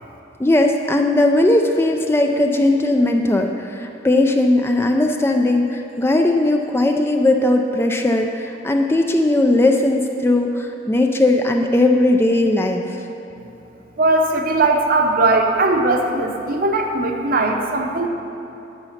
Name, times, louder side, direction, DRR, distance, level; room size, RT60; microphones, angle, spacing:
voice 1, 0.4-13.0, left 2 dB, 10° left, 3 dB, 0.3 m, -18 dB
voice 2, 14.0-18.1, right 2 dB, 45° right, 3 dB, 0.8 m, -19 dB
9.8 x 6.8 x 5.7 m, 2.8 s
head